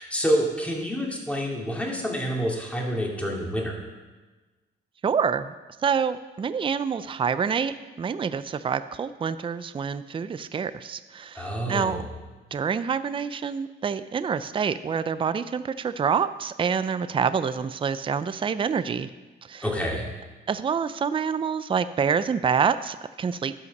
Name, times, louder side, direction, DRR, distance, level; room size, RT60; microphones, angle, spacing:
voice 1, 0.0-3.7 11.3-12.1 19.6-20.1, equal, 5° left, -2 dB, 2.6 m, -27 dB
voice 2, 5.0-5.5 5.8-12.0 12.5-19.1 19.5-19.7 20.5-23.6, right 6 dB, 25° right, 13 dB, 0.4 m, -27 dB
12.5 x 5.6 x 5.4 m, 1.2 s
cardioid pair, 90°, 20 cm